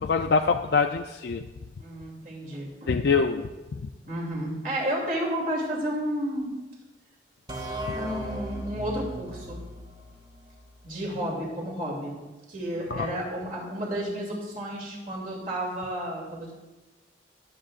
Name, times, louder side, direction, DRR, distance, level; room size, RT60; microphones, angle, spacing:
voice 1, 0.0-1.4 2.9-3.9 12.9-13.1, left 5 dB, 65° left, 5 dB, 0.4 m, -25 dB
voice 2, 1.8-2.9 4.1-6.5 7.9-9.6 10.8-12.2 12.5-16.5, equal, 50° right, -3 dB, 2.7 m, -32 dB
sound 1, 7.5-11.1, right 1 dB, 25° right, 1.1 m, -37 dB
20.0 x 7.7 x 2.5 m, 1.1 s
head